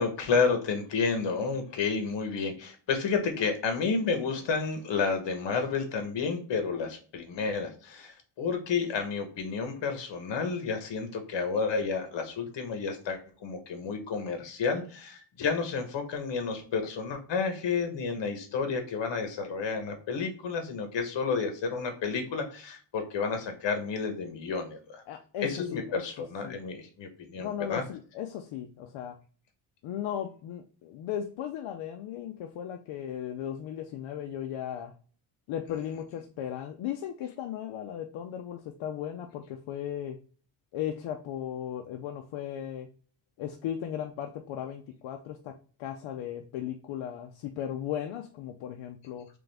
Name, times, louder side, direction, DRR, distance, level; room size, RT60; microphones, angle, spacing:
voice 1, 0.0-25.0 25.4-27.8, left 5 dB, 65° left, 6 dB, 1.3 m, -31 dB
voice 2, 25.1-26.0 26.4-26.6 27.4-29.2 29.8-34.9 35.5-40.2 40.7-42.9 43.4-49.3, left 10 dB, 80° left, 5 dB, 0.6 m, -36 dB
3.8 x 3.4 x 3.4 m, 0.41 s
cardioid pair, 130°, 47 cm